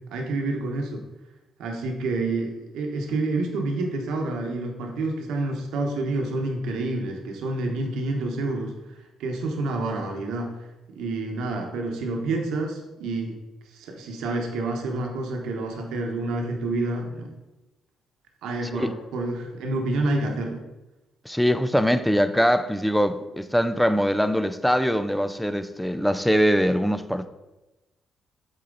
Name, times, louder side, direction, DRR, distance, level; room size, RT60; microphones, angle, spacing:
voice 1, 0.1-1.0 1.6-10.6 10.9-13.3 13.7-17.3 18.4-20.6, right 2 dB, 85° right, 1.2 m, -28 dB
voice 2, 21.3-27.3, equal, ahead, 0.5 m, -22 dB
8.4 x 4.2 x 3.9 m
cardioid pair, 90°, 0 cm